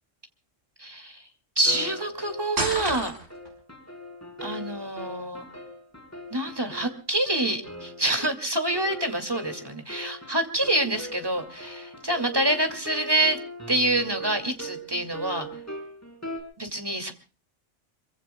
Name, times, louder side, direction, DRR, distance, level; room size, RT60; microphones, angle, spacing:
voice 1, 0.8-1.2 1.6-3.1 4.4-5.4 6.3-13.4 13.7-15.5 16.6-17.1, right 1 dB, 20° right, 6 dB, 2.4 m, -26 dB
sound 1, 1.6-16.4, equal, 10° left, 4.3 m, -40 dB
sound 2, 2.6-3.5, right 2 dB, 70° right, 4.9 m, -29 dB
26.0 x 24.0 x 2.3 m, 0.34 s
omnidirectional pair, 1.3 m